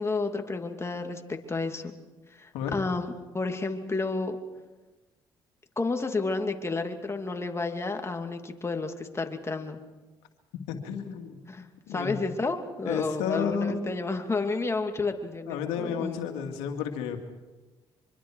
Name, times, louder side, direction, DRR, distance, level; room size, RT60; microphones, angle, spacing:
voice 1, 0.0-1.9 2.3-4.4 5.8-9.8 11.5-16.2, left 3 dB, 25° left, 5 dB, 2.7 m, -31 dB
voice 2, 10.7-11.4 11.9-12.3 12.8-13.8 15.5-17.2, left 7 dB, 90° left, 4 dB, 2.3 m, -31 dB
25.0 x 24.5 x 4.9 m, 1.2 s
supercardioid pair, 65°, 10 cm